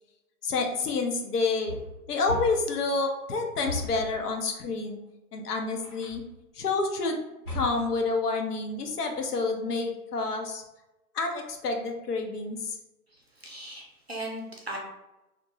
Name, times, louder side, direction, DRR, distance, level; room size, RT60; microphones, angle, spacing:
voice 1, 0.4-1.8 2.1-5.0 5.3-6.2 6.6-7.2 7.5-10.6 11.1-12.8, left 3 dB, 75° left, 3 dB, 0.7 m, -28 dB
sound 1, 1.7-2.8 3.7-4.2 5.8-6.3 7.4-8.1, left 2 dB, 35° left, 0.9 m, -36 dB
voice 2, 13.4-14.8, right 1 dB, 45° right, -2 dB, 0.4 m, -37 dB
2.5 x 2.1 x 2.9 m, 0.96 s
hypercardioid pair, 175°, 47 cm